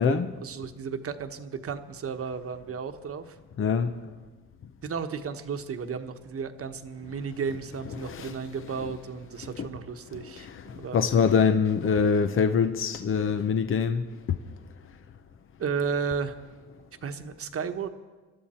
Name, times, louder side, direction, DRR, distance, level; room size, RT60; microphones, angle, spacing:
voice 1, 0.0-3.4 4.8-11.0 15.6-16.4 17.0-17.9, right 6 dB, 50° right, 1.2 m, -34 dB
voice 2, 3.6-3.9 8.0-8.3 9.6-9.7 10.4-14.0, left 6 dB, 45° left, 0.8 m, -24 dB
26.0 x 12.0 x 4.3 m
cardioid pair, 90°, 30 cm